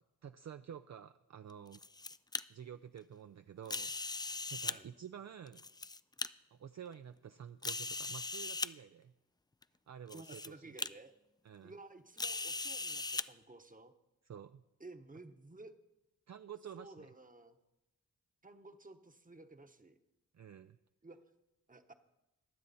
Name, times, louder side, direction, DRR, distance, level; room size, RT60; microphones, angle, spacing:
voice 1, 0.2-1.8 2.5-5.6 6.5-9.1 9.9-10.7 11.4-11.7 14.3-14.6 16.3-17.1 20.3-20.8, right 8 dB, 50° right, 10 dB, 0.5 m, -50 dB
sound 1, 1.5-2.4 3.7-4.8 5.5-6.3 6.9-7.0 7.6-8.7 9.6-9.7 10.1-10.5 10.8-10.9 12.2-13.3, left 3 dB, 10° left, 0.3 m, -39 dB
voice 2, 10.1-11.1 11.6-13.9 14.8-15.7 16.7-17.6 18.4-20.0 21.0-21.2 21.7-21.9, right 2 dB, 25° right, 8 dB, 1.1 m, -54 dB
22.0 x 7.6 x 4.2 m, 0.98 s
cardioid pair, 55°, 36 cm